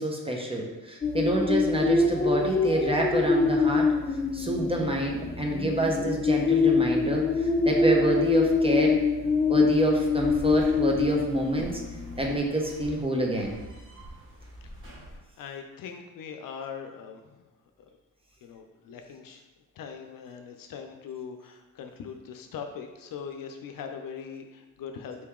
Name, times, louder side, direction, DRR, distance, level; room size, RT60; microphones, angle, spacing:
voice 1, 0.0-9.0 9.5-11.8 12.2-13.6, right 1 dB, 15° right, 0 dB, 0.8 m, -27 dB
sound 1, 1.0-12.4, left 4 dB, 20° left, 0.4 m, -25 dB
Door Sequence, 10.1-15.2, right 1 dB, 35° right, 1.3 m, -45 dB
voice 2, 15.4-17.4 17.8-17.9 18.4-19.4 19.8-25.2, left 6 dB, 75° left, 5 dB, 0.6 m, -41 dB
4.5 x 2.9 x 3.6 m, 1.1 s
cardioid pair, 90°, 34 cm